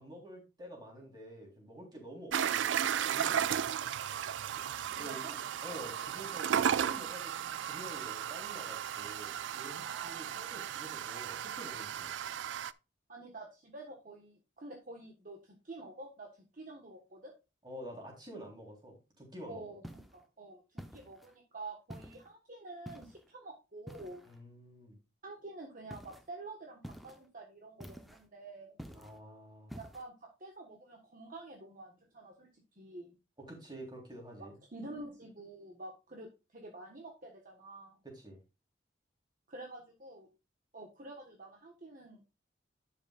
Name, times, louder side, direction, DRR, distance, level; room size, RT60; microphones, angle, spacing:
voice 1, 0.0-2.8 3.1-3.6 4.5-12.1 17.6-19.7 24.2-25.0 28.9-29.7 33.5-34.5 38.0-38.4, right 1 dB, 25° right, -1 dB, 3.7 m, -49 dB
sound 1, 2.3-12.7, right 9 dB, 70° right, 0.4 m, -35 dB
voice 2, 4.9-5.3 9.8-10.5 13.1-17.3 19.5-24.2 25.2-28.8 29.7-33.2 34.4-38.0 39.5-40.3 40.7-42.2, right 2 dB, 45° right, 1 dB, 1.4 m, -48 dB
sound 2, 19.8-20.2 20.8-21.3 21.9-22.3 22.9-23.3 23.9-24.4 25.9-26.3 26.8-27.3 27.8-28.3 28.8-29.2 29.7-30.1, equal, ahead, 0.7 m, -48 dB
10.5 x 7.4 x 2.4 m, 0.28 s
head